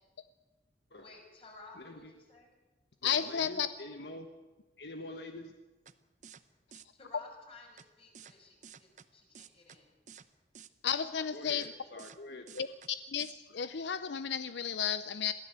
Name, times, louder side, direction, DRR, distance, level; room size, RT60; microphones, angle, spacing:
voice 1, 0.9-2.5 6.9-9.9, left 3 dB, 35° left, 0 dB, 5.8 m, -55 dB
voice 2, 1.7-2.1 3.0-4.3 4.8-5.5 11.2-12.7, left 2 dB, 70° left, 5 dB, 1.3 m, -46 dB
voice 3, 3.0-3.7 10.8-11.6 12.6-12.7 13.1-15.3, left 8 dB, 85° left, 13 dB, 0.6 m, -33 dB
sound 1, 5.9-6.0 6.2-6.4 6.7-6.8 7.8-7.9 8.1-8.3 8.6-9.1 9.3-9.8 10.1-10.3 10.5-10.7 11.6-11.7 12.0-12.2 12.5-12.9 13.2-13.3, right 7 dB, 45° right, 0.8 m, -52 dB
22.0 x 15.0 x 8.1 m, 1.2 s
head